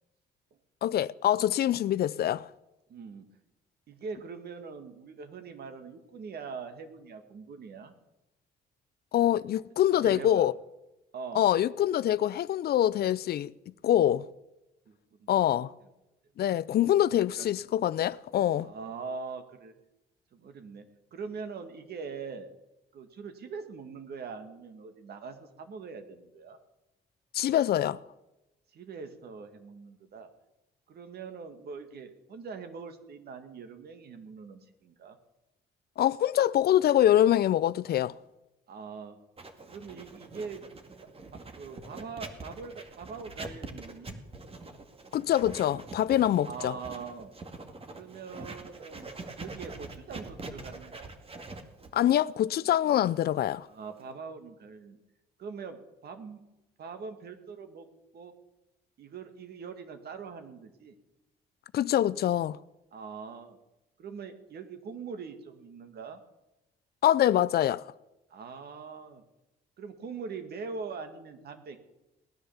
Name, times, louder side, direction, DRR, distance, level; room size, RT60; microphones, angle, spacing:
voice 1, 0.8-2.5 9.1-10.5 11.3-13.5 13.8-14.3 15.3-15.7 16.4-18.7 27.3-28.0 36.0-38.1 45.1-46.7 51.9-53.7 61.7-62.6 67.0-67.8, left 11 dB, 60° left, 0.5 m, -25 dB
voice 2, 2.9-3.3 3.9-7.9 9.9-10.5 11.1-11.5 14.9-15.7 17.3-17.5 18.6-19.7 20.3-20.8 21.1-22.5 22.9-26.6 28.7-30.3 30.9-35.2 38.7-39.2 39.7-40.6 41.6-44.2 46.4-47.3 47.9-49.1 49.4-51.1 53.7-55.0 55.4-56.4 56.8-57.9 58.1-58.3 59.0-61.0 62.9-63.6 64.0-66.2 68.3-69.2 69.8-71.8, right 5 dB, 65° right, 2.1 m, -42 dB
Writing, 39.4-54.1, right 3 dB, 35° right, 2.2 m, -44 dB
18.5 x 10.0 x 7.2 m
cardioid pair, 80°, 18 cm